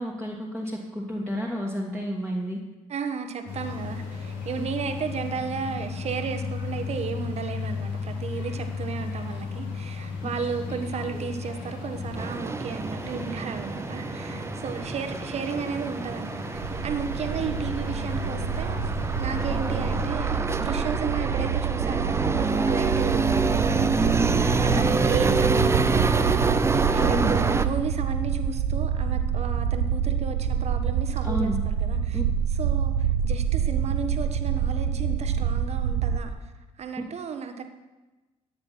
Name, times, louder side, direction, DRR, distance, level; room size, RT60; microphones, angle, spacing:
voice 1, 0.0-2.6 24.7-25.1 27.1-27.3 31.2-31.6 32.1-32.2, equal, 5° left, -5 dB, 2.2 m, -30 dB
voice 2, 2.9-16.4 16.8-18.9 19.2-32.2 32.5-36.5 36.8-37.6, right 6 dB, 40° right, 7 dB, 1.3 m, -34 dB
sound 1, 3.5-20.1, left 4 dB, 60° left, 2.6 m, -35 dB
sound 2, 12.2-27.6, right 3 dB, 15° right, 0.7 m, -27 dB
sound 3, 16.5-36.2, right 8 dB, 65° right, 0.7 m, -27 dB
13.5 x 9.7 x 4.3 m, 1.1 s
figure-of-eight pair, 50°, 17 cm